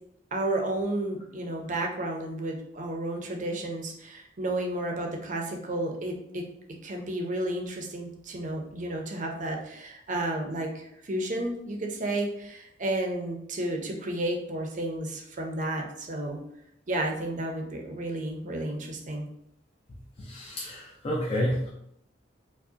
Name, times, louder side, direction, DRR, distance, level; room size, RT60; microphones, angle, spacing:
voice 1, 0.3-6.4 6.8-16.4 16.9-19.3, right 1 dB, 45° right, 2 dB, 0.6 m, -32 dB
voice 2, 20.2-21.7, equal, 35° left, -4 dB, 0.5 m, -30 dB
4.7 x 2.1 x 2.7 m, 0.76 s
head